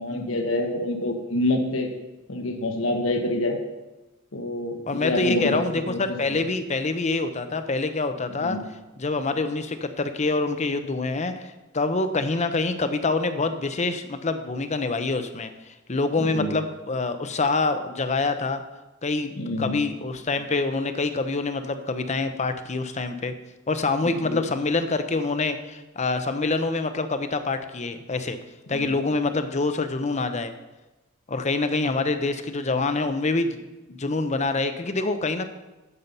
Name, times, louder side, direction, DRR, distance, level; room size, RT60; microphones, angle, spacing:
voice 1, 0.0-1.9 2.3-3.6 4.3-5.6 5.9-6.4 8.4-8.6 16.2-16.5 19.4-19.8 24.0-24.4 28.7-29.0, left 1 dB, 80° left, 4 dB, 1.3 m, -27 dB
voice 2, 4.9-8.6 9.0-11.5 11.7-15.5 15.9-18.6 19.0-23.3 23.7-28.4 28.7-30.5 31.3-33.6 33.9-35.4, left 3 dB, 35° left, 9 dB, 0.7 m, -26 dB
9.6 x 7.5 x 5.4 m, 1.1 s
head